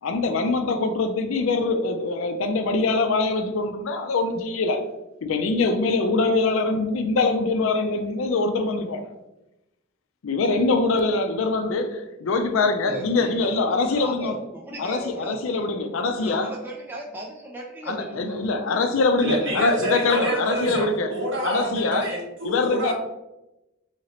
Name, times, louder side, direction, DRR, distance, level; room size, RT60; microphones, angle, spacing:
voice 1, 0.0-4.8 5.2-9.1 10.2-14.4 14.8-16.5 17.8-21.1 21.4-22.1 22.4-22.9, left 3 dB, 70° left, 6 dB, 0.4 m, -23 dB
voice 2, 12.9-13.6 14.0-15.6 16.2-18.3, right 1 dB, 10° right, -2 dB, 0.3 m, -36 dB
voice 3, 19.2-22.9, equal, 60° right, -4 dB, 1.2 m, -27 dB
3.0 x 2.8 x 2.9 m, 0.95 s
head